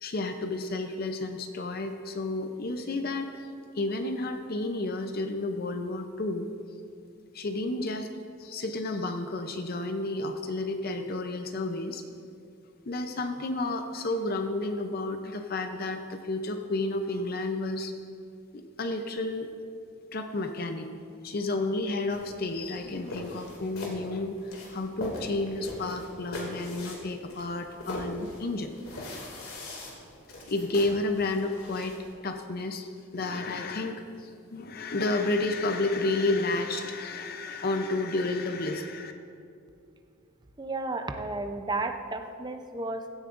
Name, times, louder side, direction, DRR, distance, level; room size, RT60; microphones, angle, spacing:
voice 1, 0.0-3.3 3.7-6.5 7.3-8.1 8.4-12.0 12.9-17.9 18.5-19.5 20.1-20.9 21.2-28.7 30.5-32.0 32.2-39.1, left 2 dB, 45° left, 6 dB, 0.6 m, -31 dB
sound 1, 22.1-32.1, left 1 dB, 90° left, 2.4 m, -41 dB
voice 2, 40.6-43.1, right 2 dB, 20° right, 6 dB, 0.6 m, -33 dB
16.5 x 13.0 x 2.6 m, 2.5 s
head